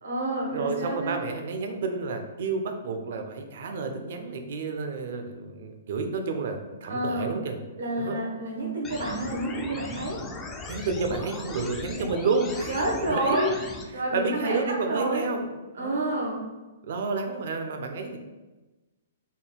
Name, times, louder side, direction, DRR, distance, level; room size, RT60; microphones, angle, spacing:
voice 1, 0.0-1.2 6.9-7.3 7.8-10.2 12.7-13.5 13.9-15.2 15.8-16.5, right 1 dB, 90° right, -2 dB, 1.1 m, -29 dB
voice 2, 0.5-7.6 8.0-8.2 10.7-12.7 13.1-13.4 14.1-15.5 15.7-16.2 16.8-18.2, right 4 dB, 60° right, 5 dB, 0.5 m, -30 dB
sound 1, 8.8-13.8, left 3 dB, 10° left, 0.3 m, -38 dB
3.7 x 2.2 x 3.9 m, 1.2 s
hypercardioid pair, 160°, 0 cm